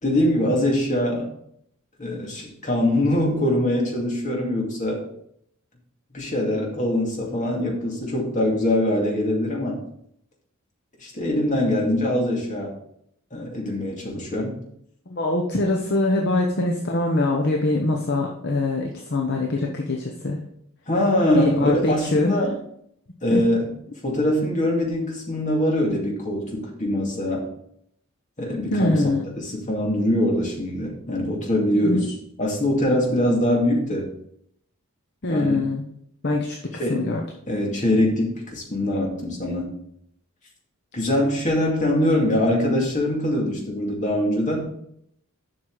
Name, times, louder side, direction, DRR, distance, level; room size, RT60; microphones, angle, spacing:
voice 1, 0.0-1.3 2.0-5.0 6.1-9.8 11.0-12.7 13.3-14.5 20.9-22.5 23.2-23.7 24.0-27.5 28.4-29.0 29.4-32.1 32.4-34.1 35.3-35.6 36.8-37.0 37.5-39.8 40.9-44.7, left 1 dB, 35° left, -2 dB, 2.2 m, -23 dB
voice 2, 15.1-20.4 21.3-22.4 23.3-23.4 28.7-29.2 31.8-32.1 35.2-35.8 36.2-36.6 36.9-37.2, left 2 dB, 50° left, 1 dB, 0.9 m, -23 dB
7.7 x 6.2 x 4.0 m, 0.71 s
head